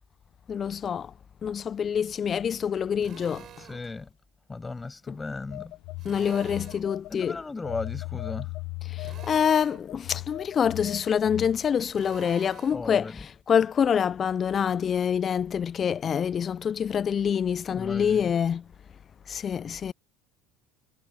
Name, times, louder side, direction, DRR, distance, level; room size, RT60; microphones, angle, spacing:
voice 1, 0.5-1.1 1.4-3.4 5.1-5.2 6.0-7.4 8.9-18.6 19.3-19.9, left 7 dB, 35° left, 0.5 m, -26 dB
Drill, 3.0-3.8 6.0-6.9 9.0-9.9 11.9-12.9, right 10 dB, 45° right, 6.0 m, -47 dB
voice 2, 3.6-4.1 4.5-5.7 7.1-8.5 12.7-13.2 17.7-18.3, left 3 dB, 20° left, 7.9 m, -36 dB
Telephone, 5.5-7.3 7.6-11.7, left 24 dB, 60° left, 1.2 m, -38 dB
hypercardioid pair, 75°, 0 cm